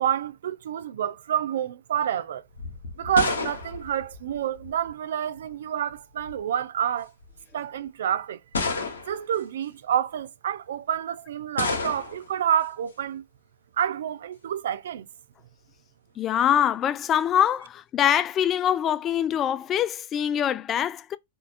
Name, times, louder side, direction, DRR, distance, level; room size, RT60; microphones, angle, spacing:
voice 1, 0.0-2.4 3.0-7.1 7.5-8.4 9.1-13.2 13.8-15.1, right 9 dB, 75° right, 0.4 m, -28 dB
sound 1, 2.6-4.9 5.9-6.4 7.2-7.3 8.5-9.3 11.6-12.3, left 4 dB, 90° left, 0.9 m, -30 dB
voice 2, 16.2-21.2, left 10 dB, 30° left, 0.3 m, -24 dB
3.5 x 2.4 x 2.4 m
hypercardioid pair, 110°, 0 cm